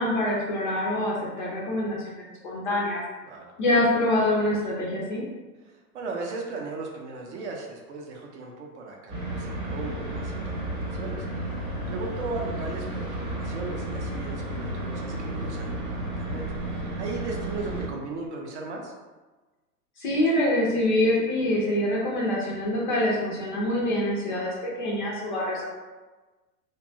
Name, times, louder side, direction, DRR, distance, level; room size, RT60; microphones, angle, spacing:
voice 1, 0.0-3.0 3.6-5.2 20.0-25.6, left 1 dB, 35° left, -4 dB, 0.4 m, -25 dB
voice 2, 5.7-11.3 11.9-18.9, right 3 dB, 45° right, 0 dB, 0.5 m, -37 dB
sound 1, 9.1-17.9, right 1 dB, 25° right, 0.9 m, -32 dB
2.7 x 2.2 x 2.6 m, 1.2 s
hypercardioid pair, 120°, 49 cm